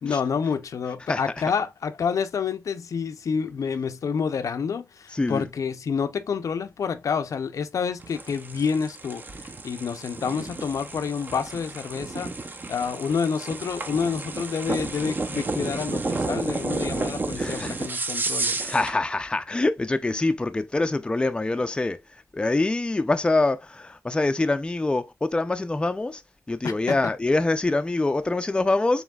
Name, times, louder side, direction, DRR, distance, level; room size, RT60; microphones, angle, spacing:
voice 1, 0.0-9.2 9.6-12.4 12.7-18.6 26.6-27.1, left 6 dB, 85° left, 0.6 m, -28 dB
voice 2, 5.1-5.5 17.3-17.8 18.2-26.2 26.5-29.0, left 2 dB, 15° left, 0.4 m, -25 dB
sound 1, 8.0-19.0, right 3 dB, 35° right, 0.6 m, -31 dB
7.2 x 3.0 x 2.3 m
wide cardioid pair, 140°, 5 cm